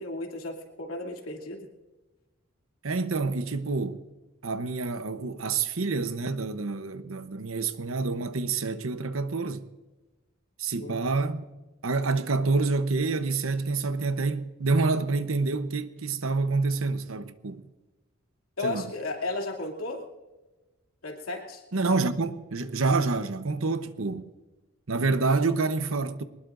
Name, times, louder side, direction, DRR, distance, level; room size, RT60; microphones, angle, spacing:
voice 1, 0.0-1.7 10.8-11.0 18.6-20.0 21.0-21.6, left 2 dB, 85° left, 2.8 m, -34 dB
voice 2, 2.8-4.0 4.4-9.7 10.6-11.4 11.8-17.6 18.6-18.9 21.7-24.3 24.9-26.2, right 3 dB, 75° right, 0.9 m, -27 dB
23.0 x 20.0 x 2.6 m
head